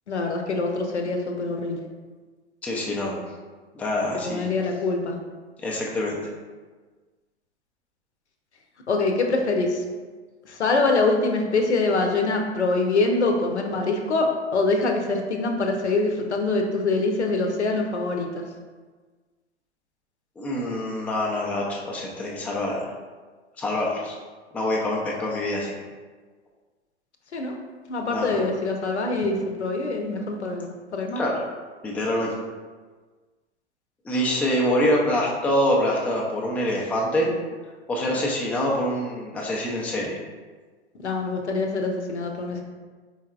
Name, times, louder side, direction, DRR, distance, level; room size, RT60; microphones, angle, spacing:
voice 1, 0.1-1.8 4.2-5.1 8.9-9.8 10.5-18.4 27.3-27.5 27.9-31.2 41.0-42.6, left 3 dB, 80° left, 3 dB, 0.7 m, -24 dB
voice 2, 2.6-3.2 3.7-4.5 5.6-6.2 20.4-22.9 23.6-24.2 24.5-25.7 28.1-28.4 31.2-31.4 31.8-32.3 34.0-37.3 37.9-40.2, left 1 dB, 5° left, -3 dB, 0.3 m, -25 dB
4.5 x 3.4 x 2.3 m, 1.4 s
figure-of-eight pair, 100°, 33 cm